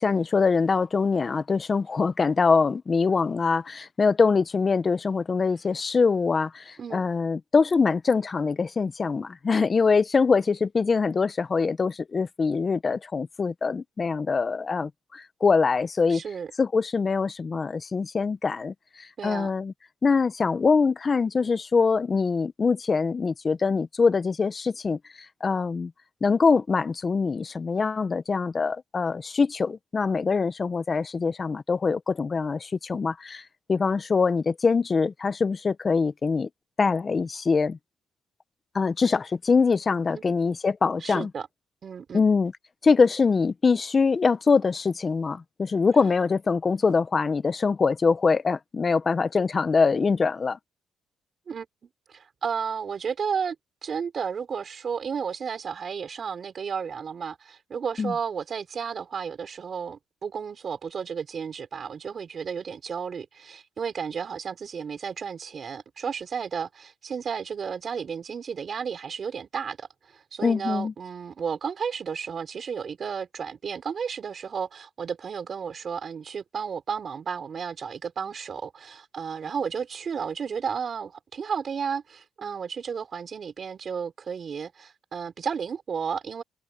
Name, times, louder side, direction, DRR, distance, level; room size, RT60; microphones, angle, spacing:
voice 1, 0.0-16.2 16.6-19.7 20.0-25.0 25.4-25.9 26.2-33.4 33.7-36.5 36.8-37.8 38.7-41.3 42.1-42.5 42.8-50.6 58.0-58.1 70.4-70.9, left 4 dB, 35° left, 0.7 m, -23 dB
voice 2, 16.1-16.5 19.2-19.5 40.1-40.2 41.0-41.5 41.8-42.2 51.5-51.7 52.1-53.6 53.8-86.4, right 6 dB, 50° right, 4.6 m, -33 dB
cardioid pair, 90°, 0 cm